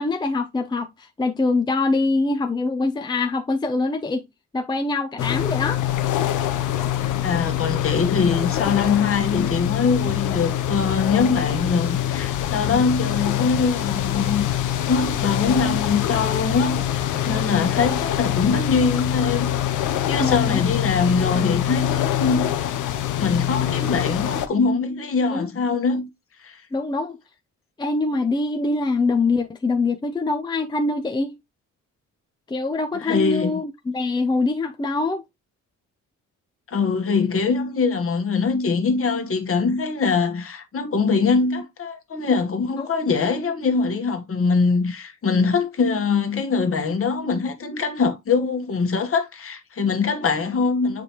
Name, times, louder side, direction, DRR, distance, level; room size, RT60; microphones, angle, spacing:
voice 1, 0.0-4.3 4.5-5.8 20.2-20.6 25.3-25.5 26.7-27.2 27.8-31.4 32.5-35.2 42.8-42.9, left 3 dB, 15° left, 0.6 m, -24 dB
sound 1, 5.2-24.5, left 11 dB, 85° left, 0.8 m, -24 dB
voice 2, 7.2-22.6 23.2-26.1 26.4-26.6 32.9-33.6 36.7-51.0, left 4 dB, 45° left, 1.4 m, -23 dB
6.7 x 5.0 x 2.9 m
cardioid pair, 90°, 30 cm